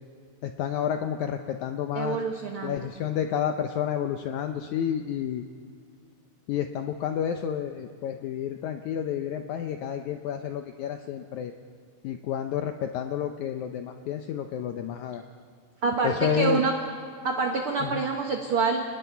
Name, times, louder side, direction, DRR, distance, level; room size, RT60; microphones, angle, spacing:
voice 1, 0.4-2.2 2.6-5.4 6.5-11.5 12.0-15.2 16.0-16.6 17.8-18.1, left 9 dB, 85° left, 6 dB, 1.7 m, -30 dB
voice 2, 1.9-2.8 15.8-16.7 17.2-18.8, right 4 dB, 60° right, 2 dB, 1.5 m, -26 dB
30.0 x 20.0 x 4.6 m, 2.3 s
omnidirectional pair, 4.3 m